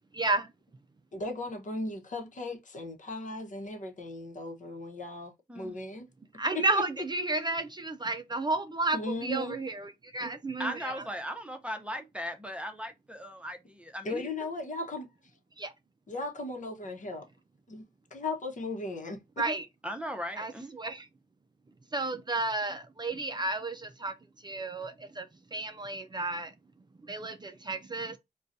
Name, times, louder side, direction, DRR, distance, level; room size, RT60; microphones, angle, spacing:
voice 1, 0.1-0.5 6.4-10.7 15.6-15.7 19.4-19.6 20.4-20.5 20.8-21.1 21.9-24.1 24.4-25.3 25.5-26.5 27.1-28.2, right 2 dB, 30° right, 0.4 m, -32 dB
voice 2, 1.1-6.1 6.5-6.6 8.9-9.6 14.0-15.1 16.1-17.2 17.7-17.8 18.1-19.2, left 2 dB, 55° left, 1.0 m, -37 dB
voice 3, 10.6-14.3 19.8-20.7, equal, 5° right, 0.8 m, -38 dB
3.8 x 2.3 x 2.6 m
cardioid pair, 70°, 16 cm